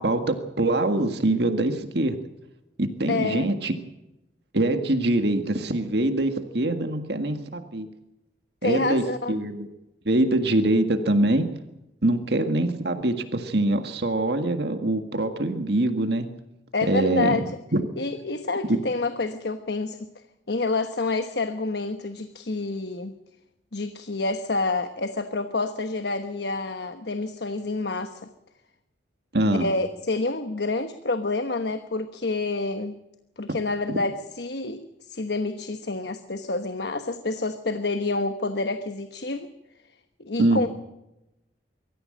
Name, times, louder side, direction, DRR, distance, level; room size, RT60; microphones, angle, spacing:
voice 1, 0.0-2.2 2.8-3.8 4.5-7.9 8.6-9.0 9.3-9.7 10.1-11.5 12.0-16.3 16.9-17.4 17.7-17.8 18.7-18.8 29.3-29.7 33.9-34.0 40.4-40.7, right 1 dB, 60° right, 7 dB, 1.8 m, -23 dB
voice 2, 3.1-3.5 8.6-9.3 16.7-17.4 18.0-20.0 20.5-23.1 23.7-28.2 29.5-33.0 33.4-34.8 35.1-39.5 40.2-40.7, left 3 dB, 60° left, 9 dB, 1.2 m, -28 dB
24.0 x 14.5 x 8.8 m, 0.94 s
head